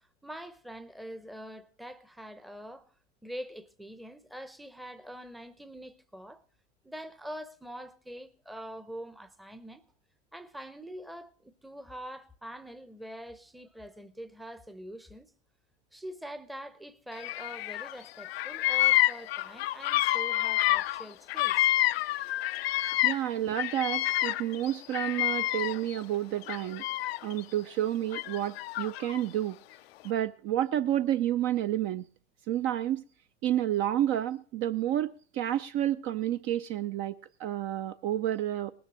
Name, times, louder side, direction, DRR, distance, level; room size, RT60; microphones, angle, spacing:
voice 1, 0.0-2.9 3.2-6.4 6.8-9.8 10.3-15.3 15.9-21.7, equal, ahead, 0.7 m, -44 dB
Bird vocalization bird call bird song, 17.2-17.9 18.2-23.3 23.6-26.0 26.4-27.4 28.1-29.2, left 15 dB, 60° left, 0.6 m, -28 dB
voice 2, 23.0-26.8 27.2-29.6 30.0-32.1 32.5-33.0 33.4-37.1 37.4-38.7, right 12 dB, 35° right, 0.5 m, -30 dB
19.5 x 7.0 x 6.2 m
figure-of-eight pair, 90°, 35 cm